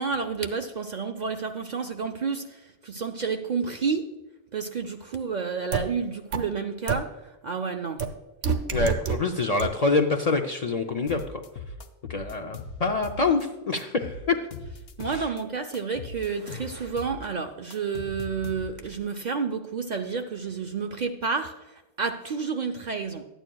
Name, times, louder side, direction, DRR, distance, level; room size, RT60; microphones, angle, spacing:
voice 1, 0.0-4.1 4.5-8.1 15.0-23.2, right 5 dB, 55° right, 5 dB, 0.5 m, -30 dB
sound 1, 5.7-5.8 6.3-6.4 6.9-7.0 8.0-8.1 8.4-9.1 9.6-9.7, right 6 dB, 75° right, 1.0 m, -24 dB
voice 2, 8.7-11.4 12.1-14.4 15.1-15.2, left 3 dB, 50° left, 4 dB, 0.5 m, -26 dB
sound 2, 11.1-13.4 13.8-15.4 15.7-19.0, left 3 dB, 65° left, 0.9 m, -40 dB
12.5 x 9.0 x 2.3 m, 1.0 s
omnidirectional pair, 1.1 m